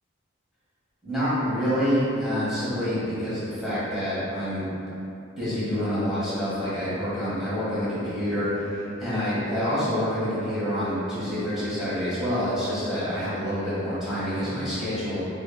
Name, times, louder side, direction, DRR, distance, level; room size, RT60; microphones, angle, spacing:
voice 1, 1.0-4.7 5.4-15.2, equal, ahead, -13 dB, 1.4 m, -27 dB
4.3 x 3.3 x 2.2 m, 2.8 s
head